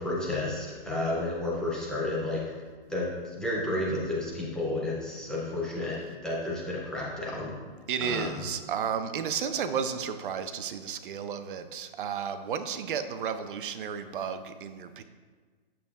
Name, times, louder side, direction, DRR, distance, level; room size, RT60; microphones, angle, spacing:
voice 1, 0.0-2.4 2.9-7.5 8.0-8.4, left 1 dB, ahead, -6 dB, 0.4 m, -31 dB
voice 2, 7.9-15.0, right 7 dB, 60° right, 10 dB, 0.6 m, -33 dB
8.6 x 6.9 x 2.3 m, 1.5 s
hypercardioid pair, 150°, 29 cm